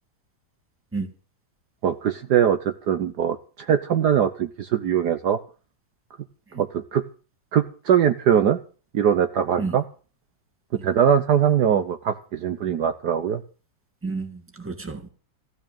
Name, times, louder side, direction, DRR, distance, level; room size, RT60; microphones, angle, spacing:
voice 1, 1.8-3.4 3.7-5.4 6.5-7.0 7.5-8.6 8.9-9.8 10.8-13.4, right 8 dB, 65° right, 1.4 m, -21 dB
voice 2, 14.0-15.1, right 4 dB, 5° right, 1.9 m, -31 dB
15.5 x 6.3 x 8.9 m
omnidirectional pair, 2.1 m